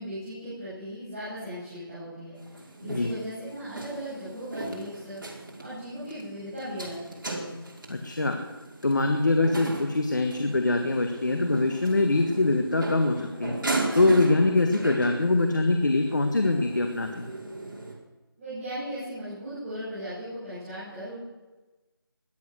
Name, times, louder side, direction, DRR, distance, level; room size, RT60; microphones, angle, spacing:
voice 1, 0.0-5.2 5.6-7.5 18.4-21.1, equal, 10° right, -17 dB, 7.2 m, -37 dB
sound 1, 2.4-17.9, right 2 dB, 60° right, 4.8 m, -37 dB
voice 2, 7.9-8.4 8.8-13.6 13.9-17.3, left 2 dB, 50° left, 5 dB, 1.7 m, -23 dB
21.0 x 10.5 x 6.4 m, 1.2 s
figure-of-eight pair, 175°, 12 cm